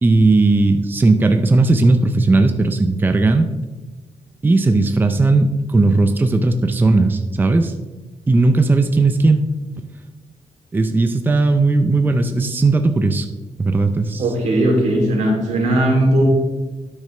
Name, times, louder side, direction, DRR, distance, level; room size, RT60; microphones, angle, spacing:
voice 1, 0.0-3.5 4.4-7.7 8.3-9.4 10.7-13.3 13.6-14.2, right 3 dB, 15° right, 7 dB, 0.5 m, -16 dB
voice 2, 14.2-16.2, right 1 dB, 85° right, -1 dB, 3.0 m, -17 dB
12.0 x 6.4 x 3.3 m, 1.2 s
wide cardioid pair, 135°, 12 cm